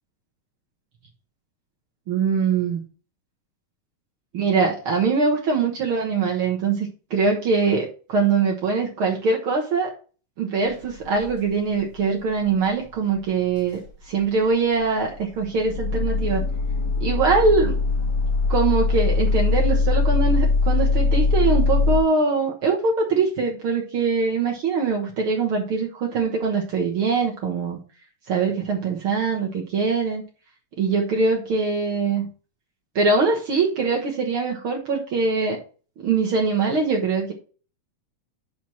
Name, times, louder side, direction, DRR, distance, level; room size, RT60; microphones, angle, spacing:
voice 1, 2.1-2.8 4.3-9.9 10.4-13.8 14.1-16.4 17.0-17.8 18.5-27.8 28.3-30.2 30.8-32.3 32.9-35.6 36.0-37.3, right 4 dB, 60° right, 0 dB, 1.4 m, -22 dB
sound 1, 10.8-11.5 11.7-12.1 12.4-12.5 12.8-12.9 13.6-22.0, left 3 dB, 40° left, 2.3 m, -22 dB
6.0 x 4.6 x 5.8 m, 0.37 s
omnidirectional pair, 3.9 m